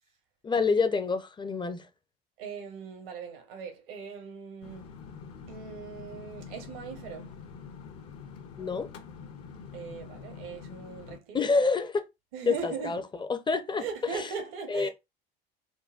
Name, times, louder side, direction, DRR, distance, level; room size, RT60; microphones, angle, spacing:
voice 1, 0.4-1.9 8.6-8.9 11.3-12.0 12.4-13.8 14.1-14.2 14.7-14.9, left 4 dB, 15° left, 0.5 m, -27 dB
voice 2, 2.4-4.9 5.5-7.4 9.7-11.4 12.3-13.1 13.8-14.9, right 6 dB, 70° right, 1.0 m, -39 dB
sound 1, 4.6-11.2, left 6 dB, 50° left, 0.8 m, -45 dB
3.8 x 2.2 x 2.4 m
hypercardioid pair, 70°, 29 cm